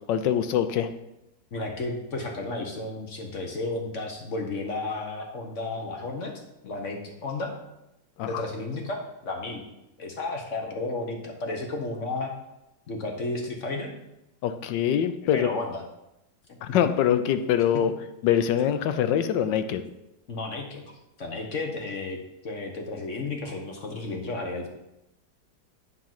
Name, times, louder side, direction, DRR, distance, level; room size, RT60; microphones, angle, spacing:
voice 1, 0.1-0.9 8.2-8.4 14.4-15.5 16.6-17.9 18.2-19.8, left 9 dB, 80° left, 10 dB, 1.3 m, -24 dB
voice 2, 1.5-6.3 6.6-7.5 8.3-9.7 10.0-12.3 12.9-13.9 15.3-15.8 17.7-17.9 20.3-20.8 21.2-22.2 22.4-24.7, left 2 dB, 50° left, 2 dB, 1.2 m, -32 dB
9.8 x 3.8 x 5.8 m, 0.89 s
omnidirectional pair, 2.0 m